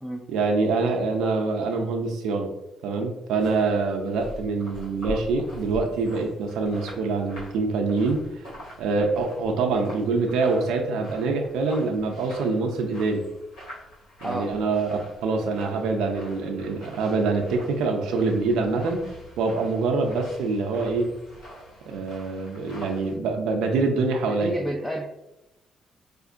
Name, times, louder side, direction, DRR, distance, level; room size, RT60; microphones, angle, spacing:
voice 1, 0.3-2.5 2.8-8.5 8.8-13.2 14.2-19.1 19.4-21.1 21.9-24.6, right 3 dB, 90° right, 2 dB, 0.4 m, -25 dB
sound 1, 3.4-23.1, equal, 90° left, 1.4 m, -44 dB
voice 2, 24.3-25.0, equal, 5° left, 1 dB, 0.4 m, -30 dB
4.3 x 2.5 x 2.4 m, 0.94 s
cardioid pair, 90°, 0 cm